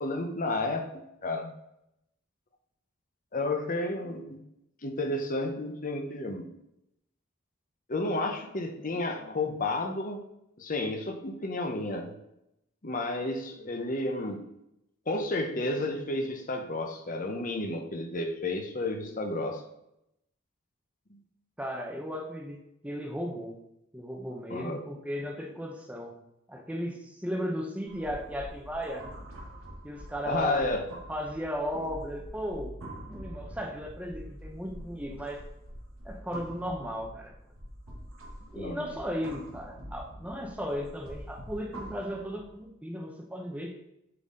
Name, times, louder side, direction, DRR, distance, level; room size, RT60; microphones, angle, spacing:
voice 1, 0.0-1.5 3.3-4.4 4.8-6.5 7.9-10.2 10.6-12.1 12.8-14.4 15.1-19.6 21.1-21.2 24.5-24.8 30.2-30.9 38.6-38.9, left 2 dB, 40° left, 4 dB, 0.8 m, -31 dB
voice 2, 21.6-23.6 23.9-26.2 26.5-29.1 29.8-30.6 31.1-32.7 33.0-35.4 36.0-37.3 38.5-43.8, equal, 5° right, 2 dB, 0.8 m, -36 dB
sound 1, 27.8-42.6, equal, 85° right, 2.2 m, -45 dB
7.6 x 4.0 x 3.7 m, 0.82 s
head